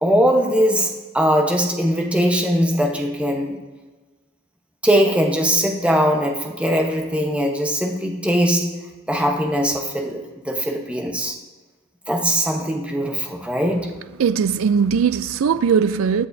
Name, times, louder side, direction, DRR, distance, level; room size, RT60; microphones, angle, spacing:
voice 1, 0.0-3.6 4.8-8.8 9.1-11.3 12.1-14.0, equal, 5° right, 1.0 m, -20 dB
voice 2, 14.2-16.3, right 6 dB, 65° right, 0.4 m, -19 dB
21.0 x 7.7 x 2.7 m
head